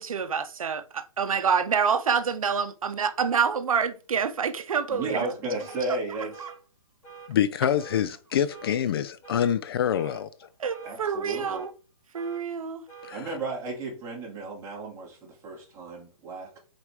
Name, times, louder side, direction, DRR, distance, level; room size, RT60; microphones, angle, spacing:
voice 1, 0.0-5.3 6.1-6.5 10.6-11.7 12.1-12.8, right 6 dB, 80° right, 0.7 m, -27 dB
voice 2, 4.9-6.4 10.8-11.6 13.1-16.6, right 3 dB, 15° right, 2.3 m, -34 dB
sound 1, 5.6-5.8 6.3-6.6 7.0-7.3 7.8-8.0 8.5-8.8 9.2-9.5 10.0-10.2 10.7-11.0 11.4-11.7 12.1-12.4 12.9-13.1, right 6 dB, 25° left, 3.6 m, -46 dB
voice 3, 7.3-10.5 13.0-13.4, left 9 dB, 45° left, 0.5 m, -26 dB
4.8 x 4.6 x 4.8 m
hypercardioid pair, 150°, 18 cm